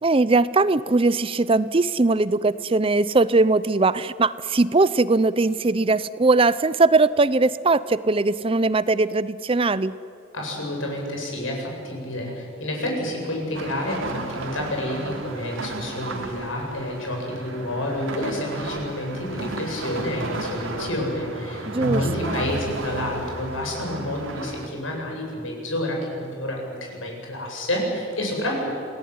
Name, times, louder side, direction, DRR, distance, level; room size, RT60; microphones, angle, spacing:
voice 1, 0.0-10.0 21.7-22.0, right 3 dB, 25° right, 16 dB, 0.6 m, -20 dB
voice 2, 10.3-28.7, left 1 dB, 75° left, 0 dB, 8.0 m, -29 dB
sound 1, 13.5-24.7, right 2 dB, 80° right, 3.4 m, -34 dB
28.0 x 18.5 x 9.5 m, 2.6 s
head